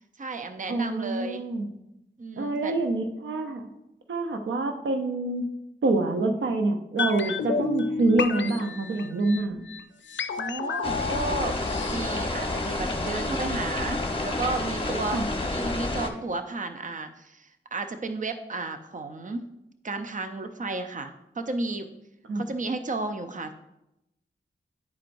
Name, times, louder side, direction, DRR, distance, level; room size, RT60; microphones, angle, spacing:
voice 1, 0.2-1.4 2.2-2.7 7.2-7.4 10.3-11.6 11.9-15.2 15.5-19.4 19.8-21.9 22.3-23.5, right 3 dB, 40° right, 7 dB, 0.6 m, -33 dB
voice 2, 0.7-1.7 2.4-3.6 4.1-5.5 5.8-9.6 15.1-15.3 22.3-22.4, right 2 dB, 85° right, 5 dB, 0.6 m, -26 dB
sound 1, 7.0-13.0 13.3-13.4, left 5 dB, 70° left, 0.4 m, -32 dB
sound 2, 10.8-16.1, left 2 dB, 25° left, 1.0 m, -29 dB
10.5 x 4.4 x 2.6 m, 0.87 s
cardioid pair, 50°, 19 cm